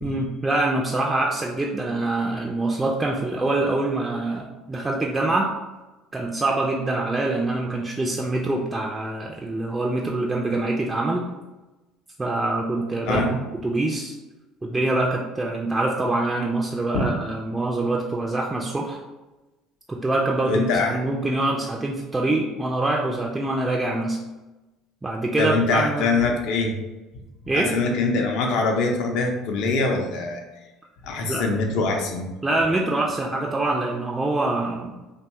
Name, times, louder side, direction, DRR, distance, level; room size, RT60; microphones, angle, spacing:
voice 1, 0.0-5.5 6.1-11.3 12.2-14.1 14.6-19.0 19.9-24.2 25.0-26.1 27.5-27.8 31.3-31.5 32.4-34.9, right 2 dB, 15° right, -1 dB, 0.3 m, -25 dB
voice 2, 20.5-21.0 25.4-26.8 27.5-30.4 31.0-32.3, left 3 dB, 60° left, 2 dB, 0.5 m, -23 dB
2.8 x 2.2 x 2.8 m, 1.1 s
hypercardioid pair, 60°, 0 cm